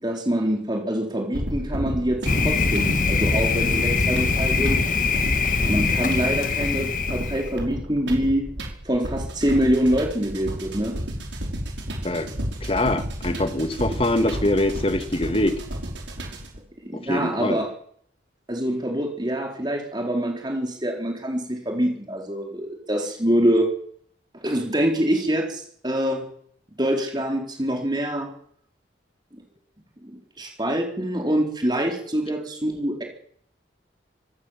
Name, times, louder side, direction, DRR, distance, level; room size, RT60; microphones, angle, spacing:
voice 1, 0.0-4.8 5.6-8.5 8.8-11.0 16.8-17.7 18.5-23.7 24.4-26.3 26.8-28.3 30.0-33.0, equal, 25° right, 2 dB, 4.1 m, -25 dB
sound 1, 1.3-16.6, equal, 80° right, 5.5 m, -32 dB
Thunder, 2.3-7.5, left 4 dB, 45° left, 1.9 m, -23 dB
voice 2, 12.6-15.6 16.9-17.6, left 1 dB, 30° left, 9 dB, 2.0 m, -24 dB
25.0 x 17.5 x 7.5 m, 0.63 s
head